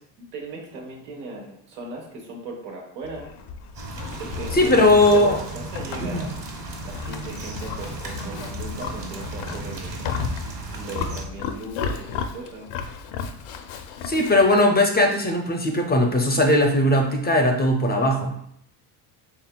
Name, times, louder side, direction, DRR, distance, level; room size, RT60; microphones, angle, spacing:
voice 1, 0.2-3.3 4.2-6.4 6.8-10.1 10.8-12.7, right 2 dB, 85° right, -1 dB, 1.3 m, -38 dB
Livestock farm animals working animals, 3.0-14.7, left 6 dB, 75° left, 0.6 m, -34 dB
sound 1, 3.7-11.2, right 2 dB, 45° right, 1.2 m, -35 dB
voice 2, 4.5-5.4 6.1-6.3 14.0-18.3, left 1 dB, 20° left, 3 dB, 0.5 m, -19 dB
4.4 x 3.4 x 2.2 m, 0.69 s
supercardioid pair, 95°, 47 cm